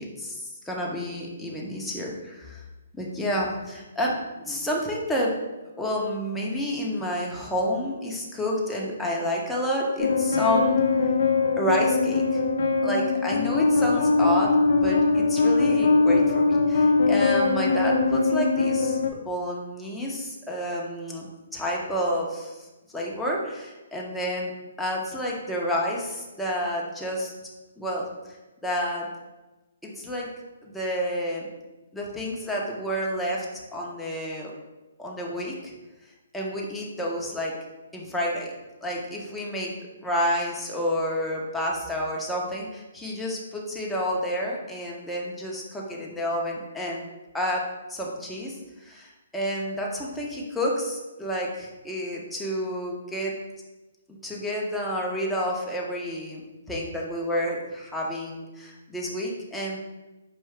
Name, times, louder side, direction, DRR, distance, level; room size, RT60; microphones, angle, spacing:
voice 1, 0.0-2.6 2.9-4.2 4.4-5.4 5.8-10.8 11.6-12.4 12.8-14.5 14.8-19.0 19.2-22.7 22.9-24.5 24.8-27.3 27.8-28.1 28.6-29.1 29.8-30.3 30.6-31.5 31.9-34.5 35.0-35.7 36.3-37.5 37.9-38.5 38.8-39.7 40.0-47.1 47.3-53.4 54.2-59.8, equal, 5° left, -4 dB, 0.7 m, -29 dB
sound 1, 10.0-19.1, left 4 dB, 65° left, 0.5 m, -22 dB
4.7 x 2.6 x 3.2 m, 1.1 s
hypercardioid pair, 150°, 0 cm